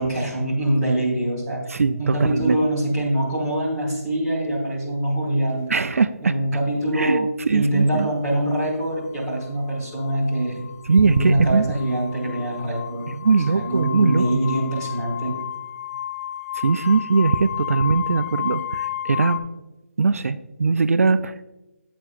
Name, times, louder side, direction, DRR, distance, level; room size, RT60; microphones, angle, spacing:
voice 1, 0.0-1.6 2.0-5.8 6.2-10.7 11.0-13.0 13.5-15.4, right 1 dB, 5° left, -7 dB, 1.3 m, -24 dB
voice 2, 1.7-2.6 5.7-6.3 6.9-8.1 10.9-11.6 13.1-14.2 16.5-19.4 20.0-21.4, right 4 dB, 65° right, 12 dB, 0.4 m, -20 dB
sound 1, 5.2-5.7 8.0-8.1 9.0-19.4, left 11 dB, 75° left, 1.0 m, -33 dB
9.4 x 7.9 x 2.4 m, 1.0 s
hypercardioid pair, 180°, 8 cm